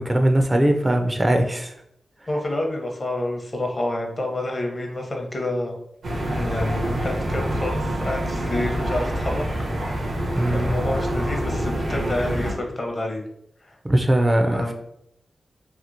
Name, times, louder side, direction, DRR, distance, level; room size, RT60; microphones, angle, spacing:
voice 1, 0.0-1.7 10.2-10.7 13.8-14.7, right 1 dB, 25° right, 4 dB, 0.3 m, -20 dB
voice 2, 2.3-5.7 6.2-9.4 10.5-13.2 13.7-13.8 14.5-14.7, left 1 dB, 45° left, 1 dB, 0.7 m, -28 dB
sound 1, 6.0-12.5, equal, 85° right, 0.8 m, -26 dB
2.8 x 2.7 x 2.5 m, 0.75 s
cardioid pair, 55°, 0 cm